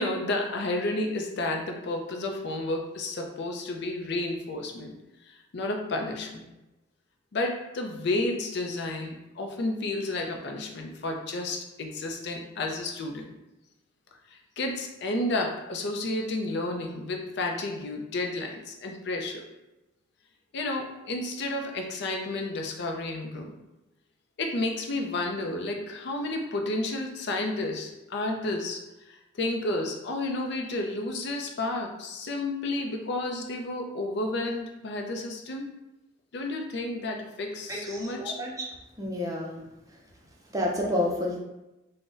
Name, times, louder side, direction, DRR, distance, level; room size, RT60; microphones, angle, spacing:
voice 1, 0.0-4.9 5.3-6.5 7.3-13.2 14.3-19.4 20.5-23.5 24.4-28.8 29.1-35.7 36.3-38.3, left 2 dB, 60° left, 2 dB, 0.4 m, -31 dB
voice 2, 37.7-38.6 39.0-39.6 40.5-41.4, left 1 dB, 20° right, -1 dB, 0.5 m, -30 dB
3.8 x 2.1 x 2.5 m, 0.96 s
head